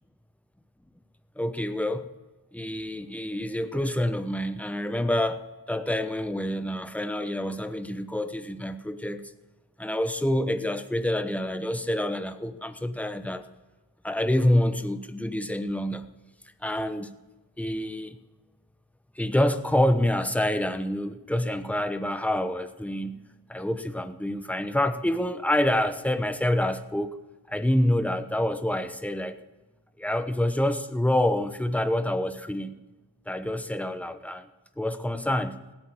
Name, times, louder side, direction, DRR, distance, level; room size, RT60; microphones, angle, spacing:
voice 1, 1.4-2.1 2.5-9.2 9.8-13.5 14.0-16.1 16.6-17.1 17.6-18.2 19.2-23.2 23.5-27.2 27.5-29.4 30.0-32.7 33.3-34.5 34.8-35.6, left 1 dB, 5° left, 9 dB, 1.0 m, -27 dB
16.5 x 9.0 x 8.8 m, 1.1 s
wide cardioid pair, 80°, 43 cm